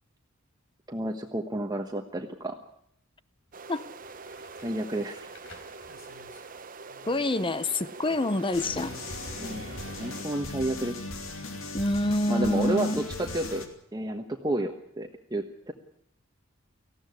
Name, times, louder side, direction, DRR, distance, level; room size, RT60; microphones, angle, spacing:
voice 1, 0.9-2.6 4.6-5.3 9.4-9.6 10.0-11.1 12.3-13.6 13.9-15.7, right 1 dB, 20° right, 4 dB, 1.2 m, -31 dB
sound 1, 3.5-3.6 4.0-7.5 7.8-11.0 13.5-13.6, left 2 dB, 65° left, 4.1 m, -55 dB
sound 2, 3.5-10.2, right 4 dB, 40° right, 1.0 m, -44 dB
voice 2, 7.1-8.9 11.7-13.0, left 1 dB, 25° left, 15 dB, 0.7 m, -27 dB
sound 3, 8.5-13.7, left 2 dB, 80° left, 2.7 m, -38 dB
19.0 x 15.0 x 9.6 m, 0.69 s
head